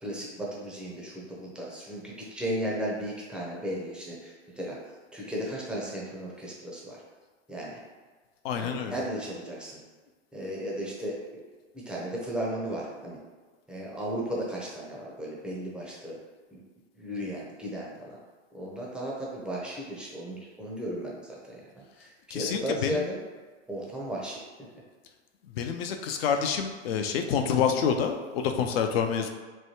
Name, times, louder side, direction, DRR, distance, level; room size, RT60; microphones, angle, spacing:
voice 1, 0.0-4.8 5.1-7.0 7.5-7.8 8.5-9.8 10.3-11.4 11.9-13.2 13.7-16.2 16.5-16.6 16.9-18.2 18.5-23.2 23.7-24.4, equal, 5° right, -4 dB, 0.5 m, -35 dB
voice 2, 8.4-8.9 22.3-23.0 25.5-29.3, left 7 dB, 55° left, 5 dB, 0.4 m, -27 dB
3.1 x 2.2 x 2.8 m, 1.4 s
hypercardioid pair, 100°, 36 cm